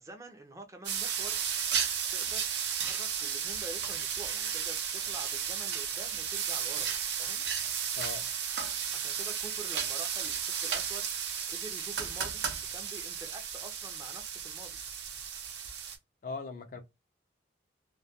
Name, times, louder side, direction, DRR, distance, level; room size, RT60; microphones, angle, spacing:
voice 1, 0.0-1.4 2.1-6.9 7.2-7.4 8.9-12.4 12.7-14.8, right 2 dB, 15° right, 0.4 m, -47 dB
sound 1, 0.8-16.0, right 8 dB, 70° right, 0.5 m, -34 dB
voice 2, 16.2-16.8, left 4 dB, 45° left, 0.4 m, -39 dB
2.2 x 2.2 x 2.7 m
head